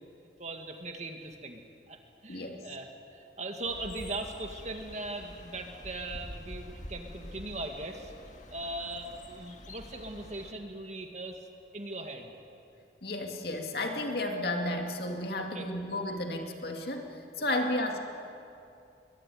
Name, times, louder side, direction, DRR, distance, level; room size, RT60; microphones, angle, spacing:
voice 1, 0.4-1.6 1.9-8.1 8.5-11.5 11.7-12.4 15.4-15.7 17.6-17.7, right 2 dB, 40° right, 4 dB, 2.0 m, -39 dB
voice 2, 2.3-2.6 13.0-18.0, left 1 dB, 60° left, 3 dB, 2.4 m, -33 dB
sound 1, 3.6-10.5, left 1 dB, 45° left, 1.9 m, -47 dB
22.0 x 19.5 x 9.5 m, 2.6 s
head